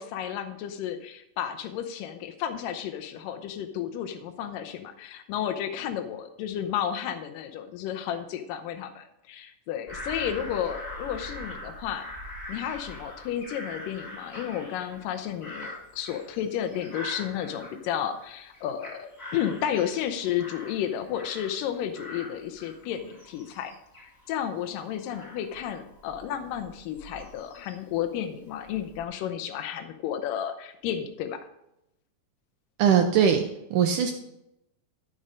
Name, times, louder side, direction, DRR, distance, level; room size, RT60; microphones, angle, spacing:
voice 1, 0.0-12.1 12.5-23.7 24.0-31.4, left 9 dB, 80° left, 6 dB, 2.3 m, -32 dB
Bird vocalization bird call bird song / Crow, 9.9-18.2 18.5-21.7 21.9-28.0 28.5-29.0, left 1 dB, 20° left, 5.0 m, -43 dB
voice 2, 32.8-33.4 33.7-34.1, right 8 dB, 75° right, 5 dB, 2.1 m, -20 dB
13.5 x 5.5 x 5.0 m, 0.85 s
omnidirectional pair, 4.0 m